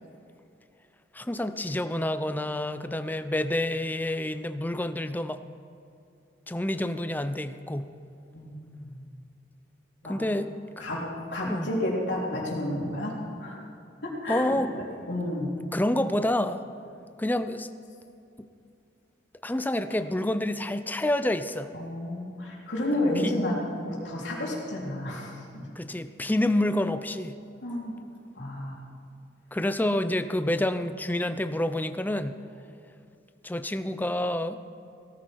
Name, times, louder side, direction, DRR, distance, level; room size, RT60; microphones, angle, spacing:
voice 1, 1.1-5.4 6.5-7.9 10.1-10.8 11.4-11.7 14.3-14.7 15.7-16.6 17.2-17.7 19.4-21.7 23.2-23.3 25.8-27.3 29.5-32.4 33.4-34.6, left 1 dB, 10° left, 10 dB, 0.5 m, -28 dB
voice 2, 8.3-9.1 10.0-10.2 10.8-11.1 11.3-13.7 14.0-14.4 15.1-15.5 21.7-23.6 23.8-25.7 27.6-28.0 28.4-28.7, left 1 dB, 75° left, -4 dB, 3.6 m, -31 dB
17.5 x 14.0 x 4.7 m, 2.6 s
head